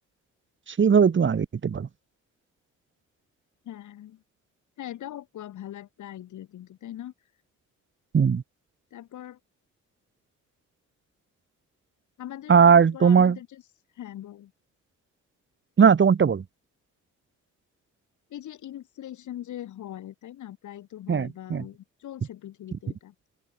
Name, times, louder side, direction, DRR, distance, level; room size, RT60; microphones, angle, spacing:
voice 1, 0.7-1.9 8.1-8.4 12.5-13.4 15.8-16.4 21.1-21.6, right 6 dB, 40° right, 2.3 m, -19 dB
voice 2, 3.6-4.2 4.8-7.1 8.9-9.4 12.2-13.6 14.0-14.5 18.3-23.1, left 12 dB, 75° left, 7.0 m, -41 dB
open air
cardioid pair, 90°, 30 cm